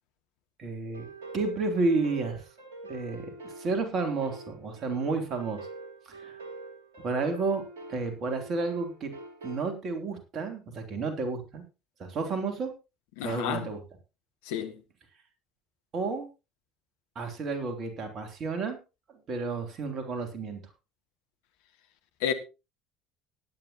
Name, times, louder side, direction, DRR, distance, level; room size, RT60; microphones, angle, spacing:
voice 1, 0.6-1.1 1.3-2.4 2.9-5.6 6.0-6.4 7.0-7.6 7.9-9.1 9.4-11.6 12.0-12.7 13.2-13.8 15.9-16.3 17.1-18.8 19.3-20.6, right 3 dB, 40° right, 3.1 m, -31 dB
sound 1, 0.9-9.7, right 2 dB, 70° right, 2.6 m, -45 dB
voice 2, 13.2-13.7 14.4-14.8 22.2-22.3, left 9 dB, 60° left, 1.6 m, -30 dB
18.5 x 9.9 x 2.9 m
figure-of-eight pair, 60°, 0 cm